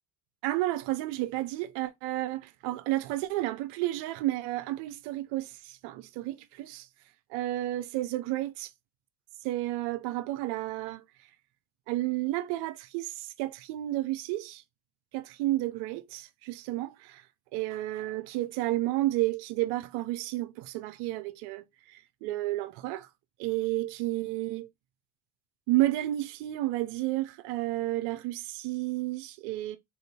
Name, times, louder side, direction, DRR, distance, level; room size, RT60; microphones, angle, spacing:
voice 1, 0.4-6.9 7.3-8.7 9.4-11.0 11.9-14.6 15.1-17.2 17.5-23.1 23.4-24.7 25.7-29.8, right 16 dB, 70° right, 0.5 m, -31 dB
3.7 x 2.8 x 2.7 m
supercardioid pair, 80°, 42 cm